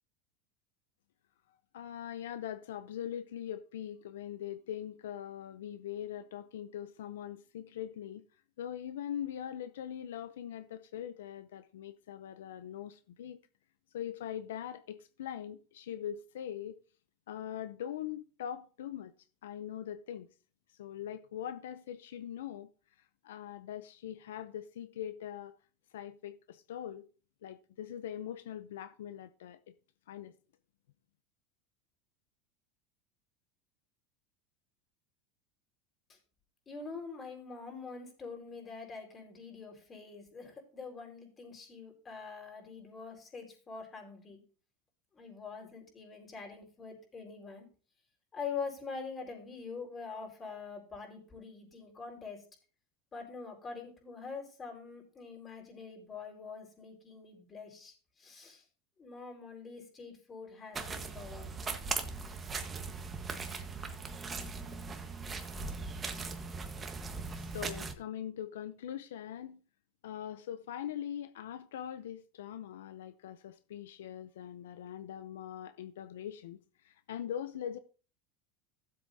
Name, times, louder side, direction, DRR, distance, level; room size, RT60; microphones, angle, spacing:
voice 1, 1.5-8.2 8.6-13.4 13.9-16.8 17.3-19.1 19.4-20.3 20.7-22.7 23.0-25.5 25.9-27.0 27.4-29.7 30.1-30.3 67.4-69.6 70.0-77.8, left 10 dB, 90° left, 0.6 m, -42 dB
voice 2, 36.7-44.4 45.1-47.7 48.3-52.4 53.1-58.6 59.0-61.5, left 5 dB, 25° left, 4.9 m, -44 dB
sound 1, 60.7-67.9, right 4 dB, 25° right, 1.4 m, -39 dB
15.5 x 7.8 x 2.8 m
supercardioid pair, 110°, 0 cm